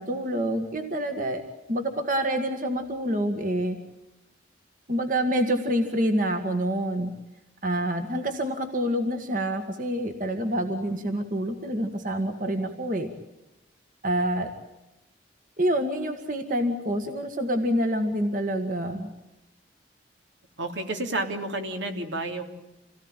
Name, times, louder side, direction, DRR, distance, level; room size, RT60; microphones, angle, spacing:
voice 1, 0.0-1.4 1.7-3.8 4.9-7.1 7.6-13.1 14.0-14.5 15.6-19.1, right 1 dB, 45° right, 6 dB, 1.9 m, -27 dB
voice 2, 20.6-22.4, right 2 dB, 80° right, 5 dB, 3.3 m, -30 dB
27.5 x 18.0 x 9.1 m, 0.98 s
head